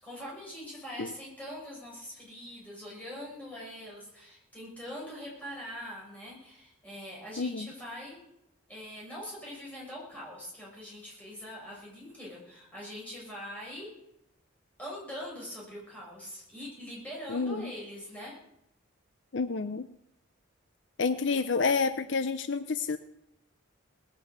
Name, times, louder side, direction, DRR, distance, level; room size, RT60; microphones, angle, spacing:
voice 1, 0.0-8.3 8.7-14.0 14.8-18.4, equal, 5° left, -5 dB, 6.3 m, -43 dB
voice 2, 7.4-7.7 17.3-17.7 19.3-19.9 21.0-23.0, left 4 dB, 55° left, 11 dB, 0.6 m, -29 dB
19.0 x 8.4 x 8.0 m, 0.82 s
head